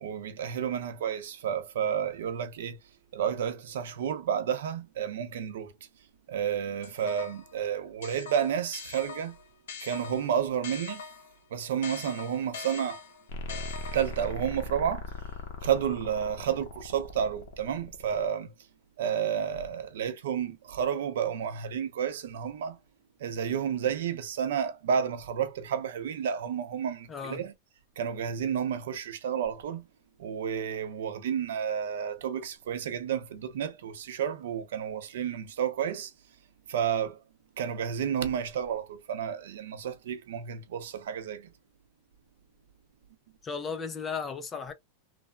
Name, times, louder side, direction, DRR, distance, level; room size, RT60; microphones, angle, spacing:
voice 1, 0.0-2.8 3.1-5.7 6.3-9.4 9.8-11.0 11.5-13.0 13.9-15.1 15.6-18.5 19.0-22.8 23.2-27.5 28.0-29.9 30.2-36.1 36.7-37.2 37.6-41.5, right 8 dB, 75° right, 0.6 m, -31 dB
sound 1, 6.8-7.5 8.0-11.4 11.8-14.3, left 6 dB, 85° left, 0.8 m, -43 dB
sound 2, 13.3-18.3, left 1 dB, 50° left, 0.7 m, -39 dB
voice 2, 27.1-27.4 43.4-44.7, left 6 dB, 15° left, 0.3 m, -35 dB
3.2 x 2.0 x 2.3 m
supercardioid pair, 175°, 0 cm